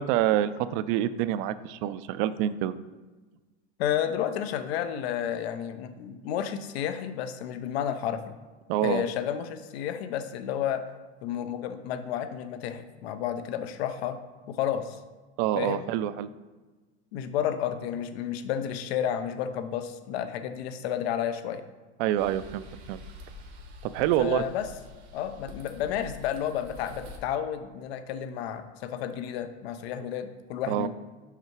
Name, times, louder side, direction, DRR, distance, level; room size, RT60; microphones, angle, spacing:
voice 1, 0.0-2.7 8.7-9.0 15.4-16.3 22.0-23.0 23.9-24.4 30.7-30.9, right 12 dB, 55° right, 14 dB, 0.4 m, -27 dB
voice 2, 3.8-8.3 8.8-10.8 11.2-14.2 14.5-15.0 15.6-15.9 17.1-21.6 24.2-24.7 25.1-30.9, left 9 dB, 75° left, 10 dB, 0.7 m, -31 dB
sound 1, 22.2-27.2, left 2 dB, 85° right, 1.3 m, -46 dB
5.7 x 4.7 x 4.6 m, 1.3 s
supercardioid pair, 130°, 31 cm